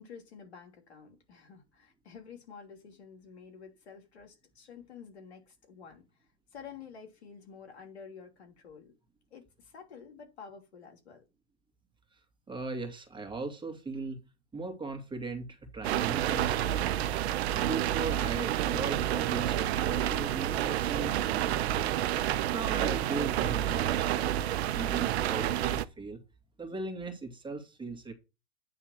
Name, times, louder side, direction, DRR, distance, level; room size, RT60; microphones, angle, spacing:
voice 1, 0.0-8.9 9.3-11.2, left 6 dB, 90° left, 2.8 m, -50 dB
voice 2, 12.5-14.2 14.5-16.5 16.8-17.0 17.5-22.1 22.5-24.4 24.7-26.2 26.6-28.1, right 3 dB, 15° right, 2.1 m, -38 dB
Rain On Skylight, 15.8-25.8, right 12 dB, 80° right, 0.7 m, -29 dB
9.1 x 3.7 x 6.3 m
hypercardioid pair, 105°, 32 cm